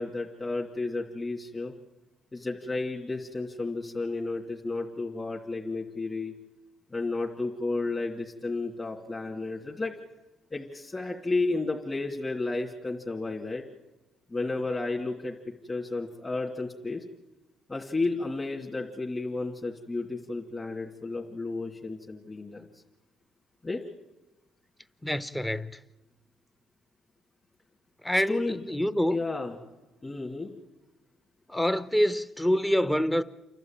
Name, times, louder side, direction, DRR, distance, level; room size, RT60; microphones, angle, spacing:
voice 1, 0.0-1.7 2.3-6.3 6.9-9.9 10.5-13.6 14.3-15.4 15.7-17.0 17.7-22.8 23.6-23.8 28.1-28.6 29.1-29.6 30.0-30.5, left 3 dB, 25° left, 2.7 m, -32 dB
voice 2, 25.0-25.8 28.0-29.2 31.5-33.2, equal, 10° left, 0.8 m, -26 dB
29.0 x 12.0 x 9.0 m
cardioid pair, 105°, 0 cm